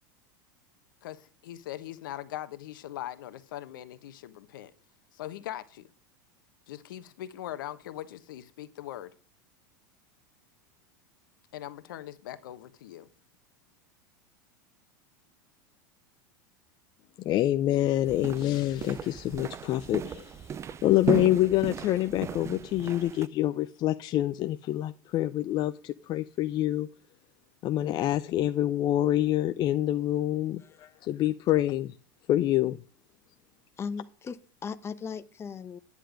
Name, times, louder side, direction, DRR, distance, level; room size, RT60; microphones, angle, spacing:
voice 1, 1.0-4.7 5.1-5.9 6.7-9.1 11.5-13.1, left 13 dB, 75° left, 1.1 m, -41 dB
voice 2, 17.2-20.5 20.8-26.9 27.6-31.9 32.3-32.8, left 14 dB, 40° left, 0.6 m, -26 dB
sound 1, 18.1-23.3, right 8 dB, 25° right, 0.4 m, -36 dB
voice 3, 33.8-35.8, left 6 dB, 25° left, 0.9 m, -37 dB
10.0 x 10.0 x 5.1 m
hypercardioid pair, 95°, 11 cm